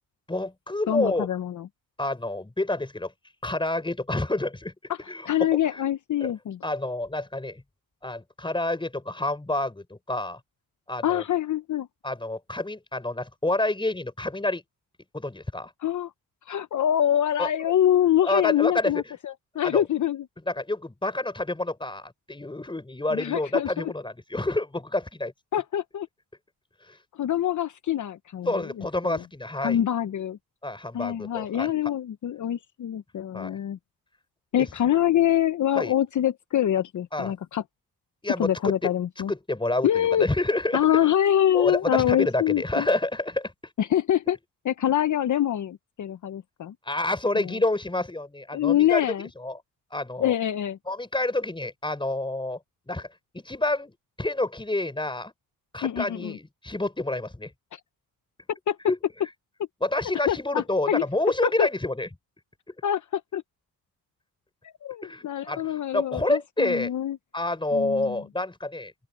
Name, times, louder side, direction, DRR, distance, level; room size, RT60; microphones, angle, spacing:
voice 1, 0.3-1.3 2.0-3.1 3.4-4.7 5.1-5.3 5.7-5.8 6.2-6.3 6.6-7.6 8.0-10.4 10.9-11.2 12.0-14.6 15.1-15.7 17.4-17.5 18.2-19.0 19.6-19.9 20.5-25.3 26.9-27.0 28.4-29.8 30.6-31.7 33.3-33.5 35.7-35.9 37.1-37.3 38.2-38.9 39.3-41.0 41.5-43.5 46.8-49.0 49.4-49.6 49.9-50.3 50.9-52.6 52.9-53.1 53.3-55.3 55.7-57.5 58.9-59.0 59.8-62.1 65.0-66.9 67.3-68.9, left 2 dB, 15° left, 5.0 m, -28 dB
voice 2, 0.9-1.7 4.9-5.0 5.2-6.6 11.0-11.9 15.8-16.1 16.5-20.2 23.1-23.9 25.5-26.1 27.1-29.2 29.6-30.4 30.9-33.8 34.5-37.6 38.4-39.3 39.8-40.3 40.7-42.9 43.8-44.4 44.7-46.7 48.5-49.3 50.2-50.8 55.8-56.4 57.7-57.8 58.7-58.8 60.3-61.0 61.4-61.7 62.8-63.4 64.6-67.2 67.7-68.2, left 11 dB, 55° left, 0.8 m, -25 dB
open air
cardioid pair, 90°, 36 cm